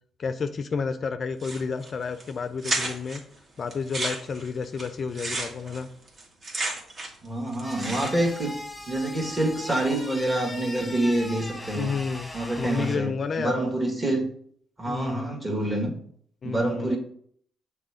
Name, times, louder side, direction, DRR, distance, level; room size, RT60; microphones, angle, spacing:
voice 1, 0.2-3.2 3.6-5.9 11.8-12.3 12.6-13.6 14.9-15.3 16.4-17.0, left 5 dB, 45° left, 10 dB, 0.4 m, -30 dB
sound 1, 1.4-1.9 2.2-2.3 2.6-3.2 3.7-7.3 7.5-8.4, right 2 dB, 45° right, 1.6 m, -32 dB
voice 2, 7.2-8.6 8.9-11.9 12.3-14.3 14.8-16.0 16.4-17.0, right 1 dB, 25° right, 0 dB, 1.8 m, -27 dB
sound 2, 7.6-13.0, left 1 dB, 10° left, 1.1 m, -40 dB
6.6 x 3.5 x 4.9 m, 0.63 s
cardioid pair, 90°, 0 cm